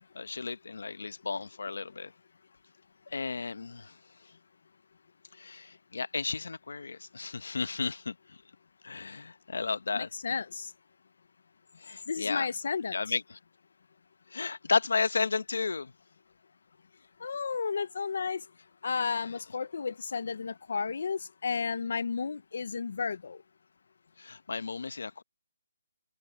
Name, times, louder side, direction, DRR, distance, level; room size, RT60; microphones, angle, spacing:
voice 1, 0.1-2.1 3.1-4.0 4.2-4.3 5.3-8.4 8.8-10.1 11.8-12.5 12.9-13.4 14.3-15.9 24.2-25.2, left 4 dB, 70° left, 1.0 m, -33 dB
voice 2, 9.9-10.7 12.1-13.0 17.2-18.4 18.8-23.4, left 5 dB, 50° left, 0.5 m, -33 dB
open air
hypercardioid pair, 180°, 0 cm